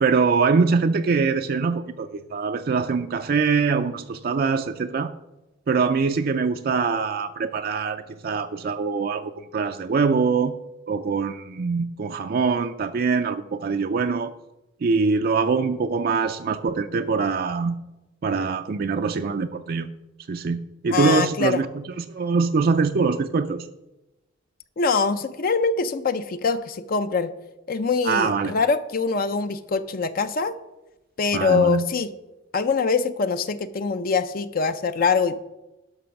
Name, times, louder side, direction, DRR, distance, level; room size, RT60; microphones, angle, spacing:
voice 1, 0.0-5.1 5.7-10.5 10.9-14.3 14.8-17.8 18.2-19.9 20.3-23.7 28.0-28.5 31.3-31.8, right 4 dB, 50° right, 7 dB, 0.4 m, -23 dB
voice 2, 20.9-21.6 24.8-27.3 27.7-30.6 31.2-32.1 32.5-35.4, left 5 dB, 45° left, 11 dB, 0.5 m, -23 dB
11.5 x 5.9 x 5.8 m, 0.99 s
head